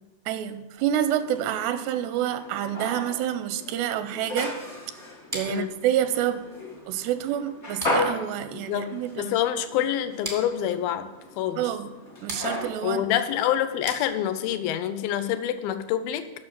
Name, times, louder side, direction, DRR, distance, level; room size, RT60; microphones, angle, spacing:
voice 1, 0.3-4.6 5.3-6.4 6.9-9.3 11.6-11.9 12.2-13.0, right 11 dB, 85° right, 11 dB, 2.7 m, -28 dB
sound 1, 0.8-14.5, left 1 dB, 55° left, 0.7 m, -36 dB
sound 2, 5.3-14.6, right 1 dB, 25° right, 0.3 m, -42 dB
voice 2, 8.4-11.1 11.4-11.6 12.8-16.3, left 11 dB, 80° left, 10 dB, 2.2 m, -27 dB
9.5 x 6.3 x 7.5 m, 1.0 s
omnidirectional pair, 4.8 m